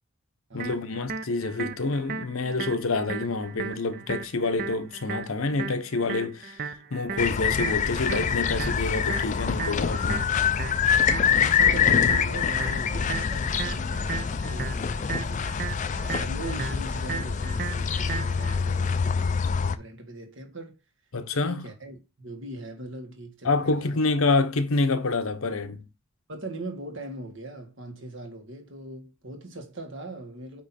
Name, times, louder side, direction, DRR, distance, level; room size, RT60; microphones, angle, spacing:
voice 1, 0.5-6.6 6.9-10.4 21.1-21.7 23.4-25.8, left 3 dB, 75° left, 0.8 m, -27 dB
sound 1, 0.6-18.6, right 5 dB, 40° right, 0.5 m, -36 dB
sound 2, 7.2-19.8, left 7 dB, 35° left, 0.3 m, -25 dB
voice 2, 11.2-15.4 15.9-19.4 19.7-20.7 21.4-24.0 26.3-30.6, right 1 dB, 60° right, 1.6 m, -40 dB
8.6 x 3.1 x 4.2 m
head